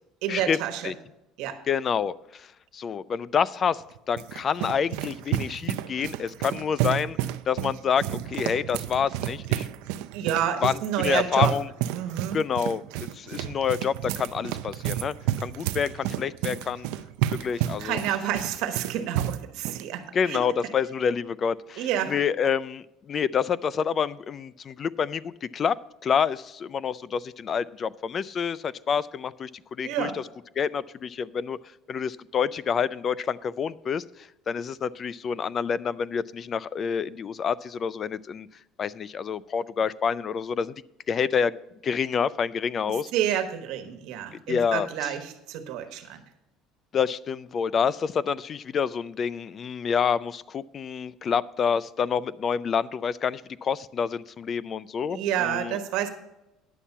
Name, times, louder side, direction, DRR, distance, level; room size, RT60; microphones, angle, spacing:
voice 1, 0.2-0.9 1.4-1.6 10.1-11.5 11.9-12.4 17.8-20.7 21.8-22.2 29.8-30.2 42.9-46.2 55.1-56.1, right 10 dB, 70° right, 7 dB, 1.3 m, -29 dB
voice 2, 1.7-2.5 2.7-7.2 7.5-9.7 9.9-10.0 10.6-11.7 12.3-15.2 15.4-16.9 17.3-18.0 20.1-25.7 26.0-30.2 30.6-31.6 31.9-34.0 34.5-38.5 38.8-40.7 41.1-41.5 41.8-43.1 44.5-44.9 46.9-55.8, left 7 dB, 30° left, 19 dB, 0.3 m, -28 dB
sound 1, 3.7-19.9, right 13 dB, 85° right, 0.5 m, -31 dB
10.0 x 7.2 x 5.5 m, 0.90 s
cardioid pair, 145°, 0 cm